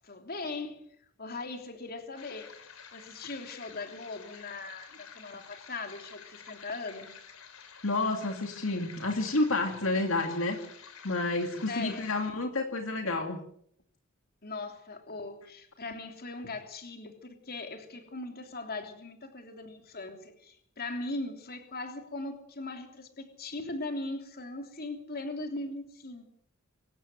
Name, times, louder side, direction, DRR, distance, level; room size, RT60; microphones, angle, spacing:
voice 1, 0.0-0.9 1.2-2.5 2.9-7.1 11.7-12.1 14.4-26.2, left 2 dB, 45° left, 5 dB, 3.1 m, -39 dB
sound 1, 2.2-12.3, left 6 dB, 90° left, 4.0 m, -50 dB
voice 2, 7.8-10.6 11.0-13.4, left 2 dB, 65° left, 4 dB, 2.4 m, -30 dB
25.0 x 14.0 x 7.9 m, 0.67 s
head